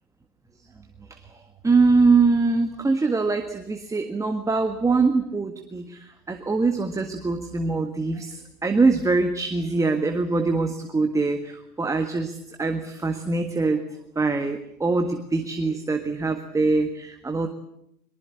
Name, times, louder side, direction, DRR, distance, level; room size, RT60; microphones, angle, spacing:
voice 1, 1.6-13.8 14.2-17.5, right 3 dB, 5° right, 6 dB, 1.6 m, -23 dB
23.5 x 22.5 x 8.5 m, 0.79 s
figure-of-eight pair, 115°, 49 cm